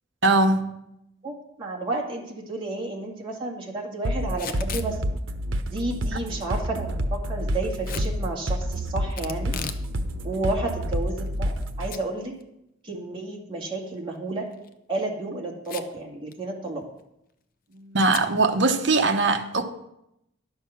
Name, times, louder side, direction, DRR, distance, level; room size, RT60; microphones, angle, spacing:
voice 1, 0.2-0.6 17.7-19.6, right 3 dB, 60° right, 7 dB, 1.0 m, -21 dB
voice 2, 1.2-5.0 5.7-9.5 10.2-12.3 12.8-14.4 14.9-16.8, right 2 dB, 25° right, -3 dB, 2.1 m, -31 dB
sound 1, 4.0-11.9, equal, 90° right, 0.9 m, -28 dB
Packing tape duct tape / Tearing, 4.3-4.9 7.8-8.1 9.2-9.9 10.2-10.3 11.0-11.6 11.9-12.0 12.4-12.5 14.5-14.7 15.6-16.0 16.3-16.4 16.7-17.0 18.1-18.3, left 6 dB, 45° left, 0.6 m, -36 dB
11.0 x 6.9 x 5.8 m, 0.83 s
head